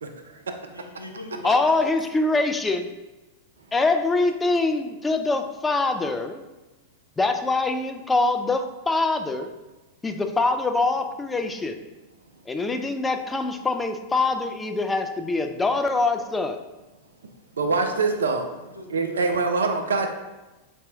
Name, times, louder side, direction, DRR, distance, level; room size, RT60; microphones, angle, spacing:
voice 1, 0.0-0.4 17.6-18.4 18.9-20.1, right 4 dB, 70° right, 5 dB, 0.4 m, -24 dB
voice 2, 0.7-1.7 17.6-18.2 18.5-19.4, equal, 90° left, 2 dB, 0.4 m, -39 dB
voice 3, 1.4-2.9 3.7-6.4 7.2-9.5 10.0-11.8 12.5-16.6, left 3 dB, 10° left, 6 dB, 0.3 m, -24 dB
4.1 x 2.6 x 3.3 m, 1.1 s
figure-of-eight pair, 90°, 0 cm